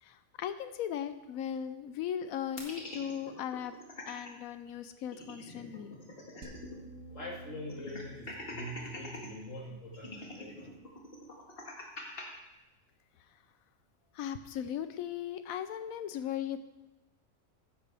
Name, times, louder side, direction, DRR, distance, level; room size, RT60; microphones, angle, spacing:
voice 1, 0.0-3.7 4.1-6.0 14.1-16.6, left 9 dB, 85° left, 11 dB, 1.0 m, -37 dB
sound 1, 2.6-4.3 4.7-4.8 5.0-6.8 7.1-7.2 7.7-9.3 9.9-12.2, left 2 dB, 45° left, 2.0 m, -44 dB
sound 2, 6.4-11.6, right 2 dB, 65° right, 1.3 m, -52 dB
voice 2, 7.1-10.7, equal, 65° left, -2 dB, 2.4 m, -44 dB
14.0 x 10.0 x 3.4 m, 1.0 s
omnidirectional pair, 1.4 m